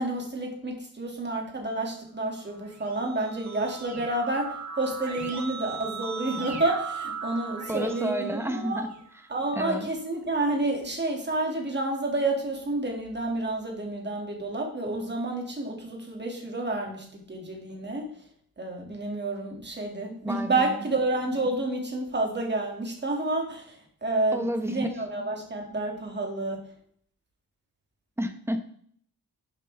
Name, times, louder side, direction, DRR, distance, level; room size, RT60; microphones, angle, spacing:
voice 1, 0.0-8.8 9.3-18.1 18.6-26.6, right 2 dB, 30° right, 1 dB, 2.3 m, -29 dB
Keyboard (musical), 2.5-9.2, right 5 dB, 50° right, 1.9 m, -38 dB
voice 2, 7.7-8.9 9.5-9.9 20.2-20.8 24.3-24.9 28.2-28.6, equal, 5° right, 7 dB, 0.9 m, -30 dB
11.0 x 7.5 x 3.4 m, 0.62 s
wide cardioid pair, 165°, 37 cm